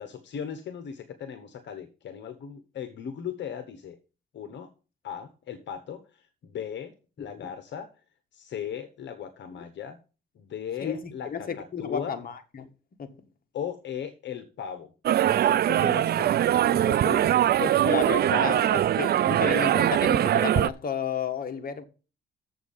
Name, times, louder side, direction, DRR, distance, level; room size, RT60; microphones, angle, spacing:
voice 1, 0.0-4.0 4.3-4.7 5.0-7.9 8.3-10.0 10.3-12.2 13.5-14.9 15.3-16.3 16.7-17.4, left 8 dB, 65° left, 1.2 m, -37 dB
voice 2, 7.2-7.5 10.8-12.7 13.0-13.1 17.1-17.2 17.6-21.8, left 7 dB, 45° left, 1.5 m, -32 dB
sound 1, 15.1-20.7, right 11 dB, 55° right, 0.4 m, -22 dB
7.3 x 6.1 x 7.3 m
cardioid pair, 90°, 20 cm